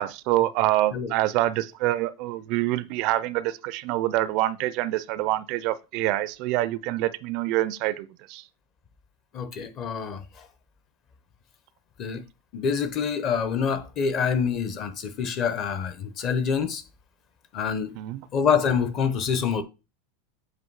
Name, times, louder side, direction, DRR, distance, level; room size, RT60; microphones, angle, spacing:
voice 1, 0.0-8.4 17.9-18.2, right 16 dB, 45° right, 0.3 m, -26 dB
voice 2, 9.3-10.2 12.0-12.2 12.5-16.8 17.5-17.9 18.3-19.6, left 6 dB, 30° left, 0.7 m, -26 dB
7.7 x 2.6 x 4.7 m
supercardioid pair, 160°, 0 cm